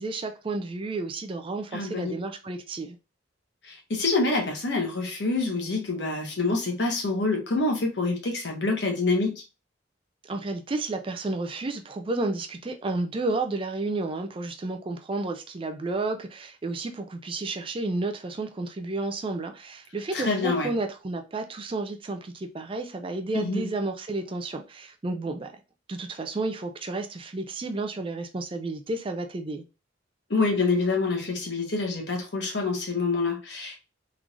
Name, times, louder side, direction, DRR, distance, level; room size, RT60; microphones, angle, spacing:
voice 1, 0.0-3.0 10.2-25.5 25.9-29.6, right 2 dB, 30° right, 0.4 m, -31 dB
voice 2, 1.7-2.1 2.5-2.6 3.6-9.3 20.1-20.7 23.3-23.7 30.3-33.8, left 3 dB, 65° left, 1.2 m, -26 dB
3.7 x 3.1 x 2.4 m
head